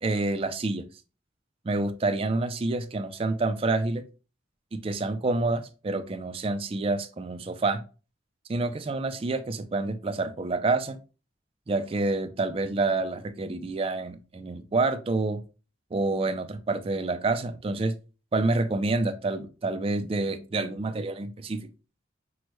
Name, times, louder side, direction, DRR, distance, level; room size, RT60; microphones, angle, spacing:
voice 1, 0.0-0.8 1.6-4.0 4.7-7.8 8.5-11.0 11.7-15.4 15.9-17.9 18.3-21.7, right 3 dB, 30° right, 10 dB, 0.4 m, -28 dB
6.1 x 2.1 x 3.0 m, 0.33 s
head